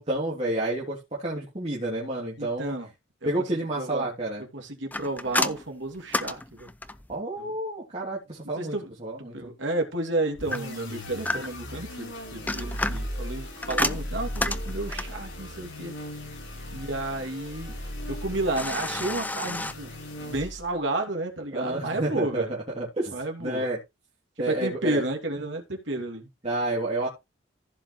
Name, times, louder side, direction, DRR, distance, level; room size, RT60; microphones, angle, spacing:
voice 1, 0.0-2.7 3.2-4.4 7.1-9.5 21.5-23.8 24.4-25.0 26.4-27.1, right 1 dB, 30° right, 3.0 m, -30 dB
voice 2, 2.4-2.9 3.2-3.3 3.8-4.1 4.4-6.7 7.4-7.5 8.6-8.9 9.3-15.9 16.7-17.8 18.1-19.9 20.2-22.5 23.1-23.7 24.5-26.3, right 2 dB, 65° right, 2.7 m, -31 dB
sound 1, 4.9-7.2 10.5-11.7 12.3-15.2 18.6-19.7, left 2 dB, 10° left, 0.5 m, -31 dB
sound 2, 10.3-20.8, equal, 80° left, 7.7 m, -37 dB
15.0 x 5.6 x 3.2 m
head